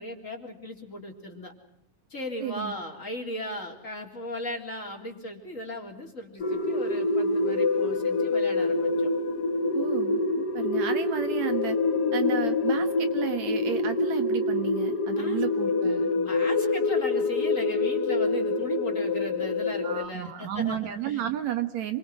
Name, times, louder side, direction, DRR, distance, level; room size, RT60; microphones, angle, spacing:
voice 1, 0.0-1.5 2.1-9.1 15.1-21.2, left 1 dB, 25° left, 2 dB, 3.7 m, -37 dB
voice 2, 2.4-2.7 9.7-11.8 12.1-16.1 19.8-22.0, right 11 dB, 65° right, 8 dB, 2.6 m, -32 dB
sound 1, 6.4-20.1, left 3 dB, 70° left, 0.9 m, -26 dB
28.5 x 24.0 x 6.2 m, 0.81 s
omnidirectional pair, 3.4 m